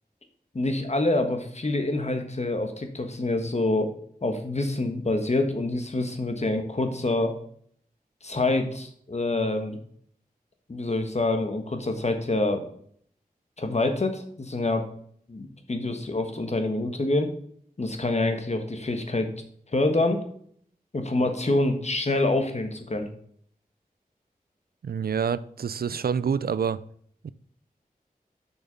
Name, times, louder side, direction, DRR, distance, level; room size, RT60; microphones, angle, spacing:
voice 1, 0.5-3.9 4.2-7.4 8.2-9.8 10.7-12.6 13.6-14.9 15.3-17.3 17.8-19.3 19.7-20.2 20.9-23.1, left 2 dB, 45° left, 6 dB, 1.3 m, -26 dB
voice 2, 24.8-26.8 27.2-27.3, right 6 dB, 85° right, 16 dB, 0.4 m, -27 dB
6.8 x 6.2 x 5.2 m, 0.62 s
wide cardioid pair, 75°, 15 cm